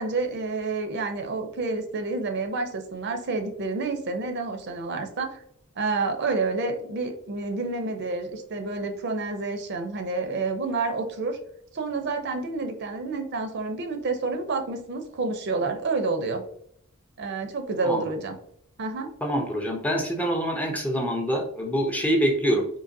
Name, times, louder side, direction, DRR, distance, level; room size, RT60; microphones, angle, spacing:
voice 1, 0.0-5.4 5.8-11.4 11.7-16.4 17.2-18.3 18.8-19.1, right 3 dB, 50° right, 6 dB, 0.5 m, -29 dB
voice 2, 19.2-22.7, equal, 5° left, 2 dB, 0.4 m, -25 dB
3.9 x 2.8 x 2.6 m, 0.67 s
head